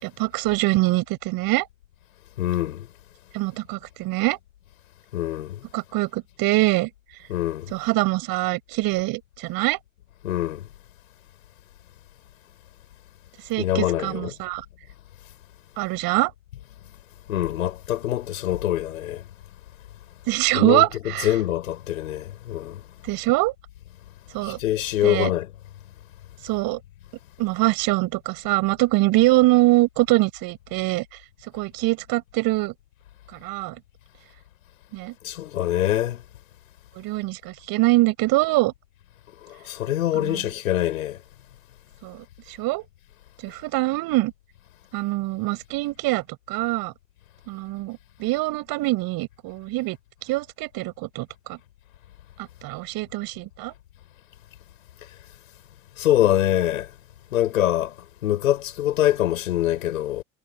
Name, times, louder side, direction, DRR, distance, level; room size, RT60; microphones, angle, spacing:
voice 1, 0.0-1.7 3.3-4.4 5.7-6.9 7.7-9.8 13.5-14.6 15.8-16.3 20.3-21.3 23.1-23.5 24.3-24.6 25.0-25.3 26.4-26.8 27.4-31.1 31.5-32.7 33.4-33.8 34.9-35.1 37.0-38.7 40.1-40.4 42.0-42.8 43.4-44.3 44.9-46.9 47.5-50.0 50.3-51.6 52.6-53.7, right 20 dB, 60° right, 6.9 m, -23 dB
voice 2, 2.4-2.9 5.1-5.6 7.3-7.7 10.2-10.6 13.6-14.3 17.3-19.3 20.5-20.9 21.2-22.8 24.4-25.5 35.2-36.2 39.4-41.2 56.0-56.9 57.3-57.9 58.2-60.2, left 13 dB, 80° left, 6.4 m, -24 dB
hypercardioid pair, 70°, 41 cm